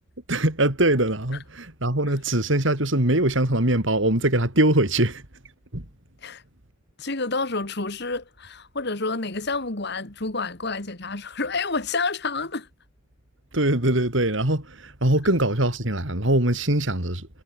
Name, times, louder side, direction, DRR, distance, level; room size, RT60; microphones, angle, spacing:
voice 1, 0.3-5.2 5.7-5.9 13.5-17.3, right 1 dB, 65° right, 3.6 m, -22 dB
voice 2, 7.0-12.7, left 3 dB, 55° left, 2.2 m, -29 dB
head